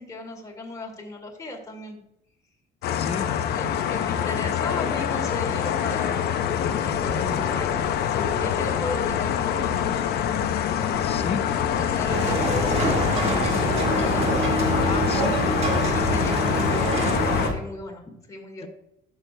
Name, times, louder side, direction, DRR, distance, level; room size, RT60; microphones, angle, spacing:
voice 1, 0.0-2.0 3.5-6.5 6.8-7.7 8.1-9.7 11.8-18.7, left 2 dB, 20° left, 1 dB, 2.0 m, -36 dB
sound 1, 2.8-17.5, left 9 dB, 70° left, 0.7 m, -25 dB
voice 2, 2.9-3.3 4.0-4.1 11.0-11.5 14.8-15.6 16.1-16.3 18.6-18.7, left 7 dB, 35° left, 10 dB, 0.5 m, -33 dB
sound 2, 6.6-12.2, right 2 dB, 75° right, 1.3 m, -41 dB
sound 3, 12.1-17.5, right 1 dB, 35° right, 1.7 m, -25 dB
13.0 x 6.3 x 2.2 m, 0.79 s
cardioid pair, 110°, 17 cm